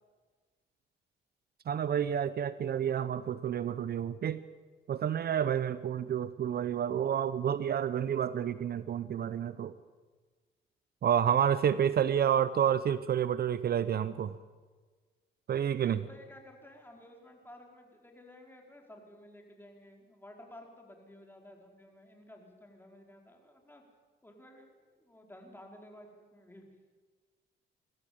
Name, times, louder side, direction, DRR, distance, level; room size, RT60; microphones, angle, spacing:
voice 1, 1.7-4.4 4.9-9.7 11.0-14.4 15.5-16.0, right 9 dB, 50° right, 15 dB, 0.7 m, -29 dB
voice 2, 15.8-23.8 24.2-26.6, left 1 dB, 10° left, 2 dB, 4.5 m, -54 dB
22.0 x 14.0 x 8.7 m, 1.4 s
cardioid pair, 90°, 20 cm